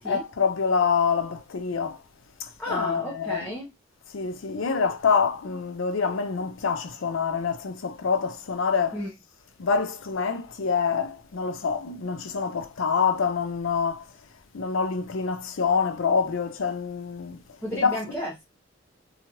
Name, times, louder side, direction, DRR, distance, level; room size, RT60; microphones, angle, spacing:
voice 1, 0.0-2.0 2.4-3.4 4.1-8.9 9.6-14.1 14.5-17.4 17.8-18.0, left 5 dB, 75° left, 0.5 m, -26 dB
voice 2, 2.6-3.7 8.9-9.1 17.6-18.4, left 1 dB, 10° left, 0.8 m, -32 dB
2.8 x 2.4 x 2.9 m
head